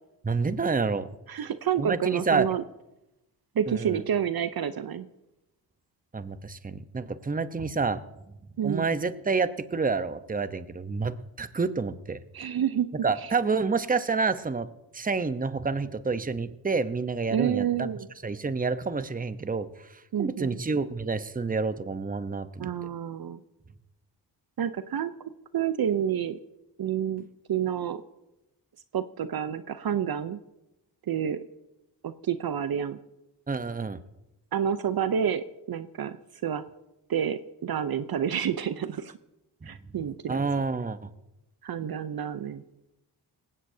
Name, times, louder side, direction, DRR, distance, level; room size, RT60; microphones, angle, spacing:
voice 1, 0.2-1.1 1.8-2.5 3.7-4.0 6.1-8.0 8.6-12.2 13.0-14.7 14.9-17.9 18.2-22.7 33.5-34.0 39.6-39.7 40.3-41.1, right 4 dB, 20° right, 12 dB, 0.9 m, -28 dB
voice 2, 1.3-2.6 3.5-5.1 8.6-8.8 12.3-12.9 17.3-18.1 20.1-20.6 22.6-23.4 24.6-25.1 25.5-26.4 26.8-28.0 28.9-30.4 31.1-31.4 32.0-33.0 34.5-36.2 36.4-36.6 37.1-39.1 39.6-40.4 41.6-42.6, right 9 dB, 55° right, 12 dB, 0.7 m, -29 dB
19.0 x 16.5 x 2.8 m, 0.94 s
supercardioid pair, 50°, 45 cm